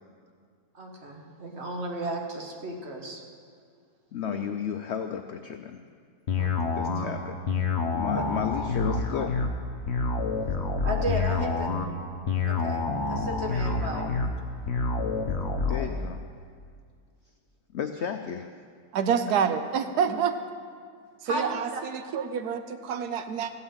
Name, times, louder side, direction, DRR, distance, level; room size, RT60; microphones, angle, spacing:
voice 1, 0.7-3.2 4.2-4.4 6.4-6.6 8.1-8.2 10.8-11.7 12.4-14.1 21.3-21.8, right 1 dB, 45° right, 1 dB, 1.6 m, -34 dB
voice 2, 4.1-5.8 6.7-7.4 7.9-9.4 15.2-16.2 17.7-18.5 19.3-19.4, left 8 dB, 75° left, 7 dB, 0.6 m, -33 dB
sound 1, 6.3-15.9, left 4 dB, 50° left, 1.0 m, -28 dB
voice 3, 18.9-20.4 21.2-23.5, right 7 dB, 85° right, 9 dB, 1.2 m, -27 dB
14.0 x 5.7 x 8.7 m, 2.1 s
omnidirectional pair, 1.7 m